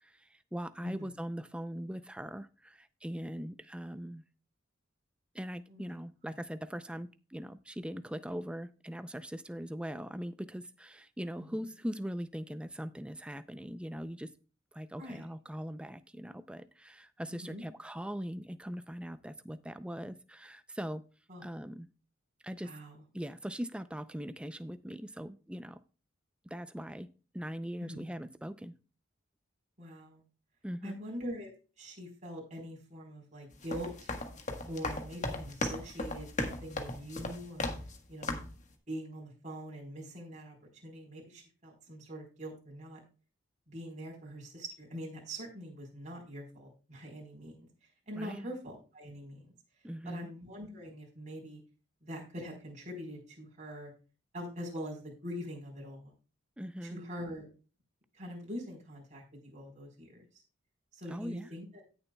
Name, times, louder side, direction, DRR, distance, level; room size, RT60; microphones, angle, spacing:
voice 1, 0.0-4.2 5.3-14.3 14.7-21.0 21.4-21.9 22.4-22.7 23.1-25.8 26.4-27.1 27.3-28.7 30.6-31.0 48.1-48.5 49.8-50.3 56.6-57.0 61.1-61.5, equal, 5° right, 0.5 m, -41 dB
voice 2, 0.8-1.1 5.7-5.9 15.0-15.3 17.3-17.6 21.3-21.4 22.6-23.0 27.8-28.0 29.8-30.2 30.8-31.5 31.8-34.1 34.7-37.7 38.1-38.4 38.9-43.0 43.7-47.7 48.1-49.5 50.0-51.6 52.0-53.9 54.3-56.1 56.8-57.5 58.1-60.2 60.9-61.7, equal, 35° right, 4.2 m, -43 dB
sound 1, 33.5-38.0 38.2-38.6, left 2 dB, 40° left, 1.4 m, -37 dB
17.0 x 6.9 x 2.3 m
head